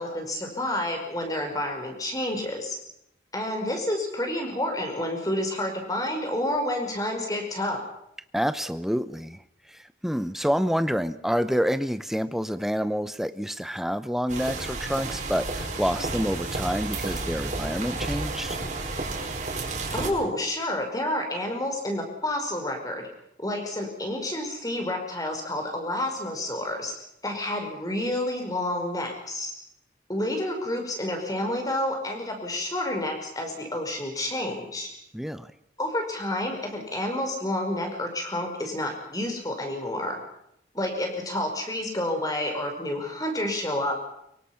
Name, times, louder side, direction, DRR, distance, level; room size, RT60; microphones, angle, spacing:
voice 1, 0.0-2.8 3.3-7.8 19.9-23.1 23.4-26.9 27.2-29.5 30.1-34.9 35.8-40.2 40.7-43.9, left 1 dB, 20° left, 3 dB, 5.1 m, -29 dB
voice 2, 8.3-9.4 9.7-18.6 35.1-35.5, equal, ahead, 12 dB, 0.7 m, -28 dB
sound 1, 14.3-20.1, right 3 dB, 40° right, 5.1 m, -31 dB
24.5 x 23.5 x 5.8 m, 0.78 s
head